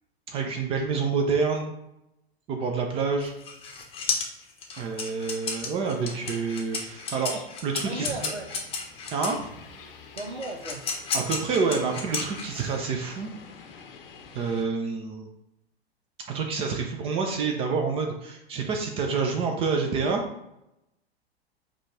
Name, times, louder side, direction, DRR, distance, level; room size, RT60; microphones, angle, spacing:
voice 1, 0.3-1.7 2.5-3.3 4.8-8.3 9.1-9.5 11.1-13.3 14.3-15.3 16.3-20.2, right 5 dB, 20° right, 3 dB, 0.4 m, -28 dB
sound 1, 3.2-9.4 10.2-12.8, left 5 dB, 15° left, 0.8 m, -32 dB
sound 2, 5.8-14.7, left 5 dB, 60° left, 0.7 m, -48 dB
voice 2, 7.8-8.5 10.2-11.0, right 2 dB, 85° right, 4 dB, 0.8 m, -35 dB
5.0 x 2.3 x 4.1 m, 0.85 s
figure-of-eight pair, 95°, 32 cm